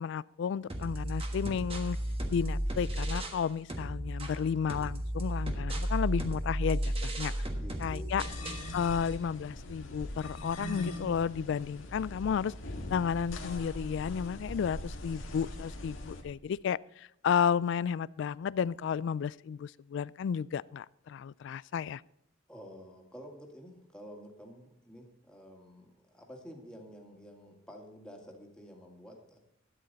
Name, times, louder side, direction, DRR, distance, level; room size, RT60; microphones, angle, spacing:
voice 1, 0.0-2.0 2.3-7.3 7.8-8.2 8.7-12.5 12.9-22.0, left 7 dB, 65° left, 21 dB, 0.3 m, -32 dB
sound 1, 0.7-3.4 3.7-8.7, equal, 30° right, 1.4 m, -34 dB
voice 2, 7.6-8.7 22.5-29.4, equal, 5° left, 0 dB, 2.0 m, -50 dB
sound 2, 8.2-16.2, left 1 dB, 85° left, 1.8 m, -41 dB
12.5 x 9.1 x 4.1 m, 0.81 s
head